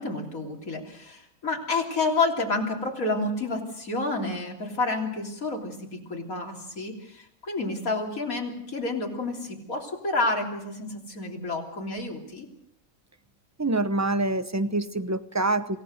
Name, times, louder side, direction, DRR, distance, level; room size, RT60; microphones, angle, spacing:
voice 1, 0.0-12.5, left 3 dB, 90° left, 1 dB, 3.8 m, -29 dB
voice 2, 13.6-15.8, right 2 dB, 15° right, 11 dB, 0.8 m, -26 dB
27.0 x 16.5 x 6.6 m, 0.78 s
omnidirectional pair, 1.4 m